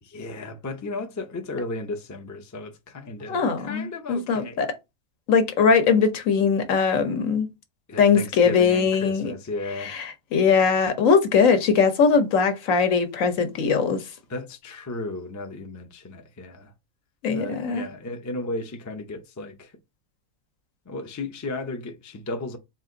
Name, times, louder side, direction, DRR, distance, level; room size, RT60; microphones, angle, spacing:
voice 1, 0.1-4.6 7.9-9.9 14.3-16.7 17.3-19.7 20.9-22.6, left 2 dB, 30° left, 0.3 m, -34 dB
voice 2, 3.3-4.7 5.3-7.5 8.0-9.3 9.8-14.0 17.2-17.9, left 5 dB, 80° left, 1.2 m, -21 dB
4.2 x 2.5 x 3.7 m
omnidirectional pair, 1.4 m